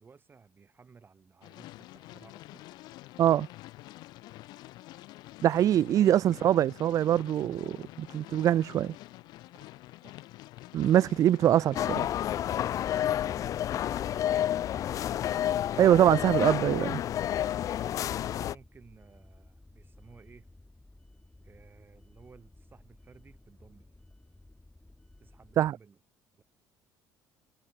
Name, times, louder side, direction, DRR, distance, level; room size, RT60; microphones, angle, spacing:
voice 1, 0.0-2.6 3.3-3.4 5.7-6.8 10.0-10.2 11.3-12.9 13.6-15.9 17.9-20.5 21.4-23.9 25.2-26.0 26.4-26.5, right 5 dB, 30° right, 6.5 m, -56 dB
sound 1, 1.4-13.1, left 18 dB, 70° left, 0.9 m, -48 dB
voice 2, 5.4-8.9 10.7-11.7 15.8-17.0 25.6-25.8, right 11 dB, 50° right, 0.5 m, -23 dB
sound 2, 11.7-18.5, left 11 dB, 50° left, 0.4 m, -30 dB
sound 3, 12.0-25.7, left 2 dB, 10° left, 7.1 m, -57 dB
supercardioid pair, 100°, 8 cm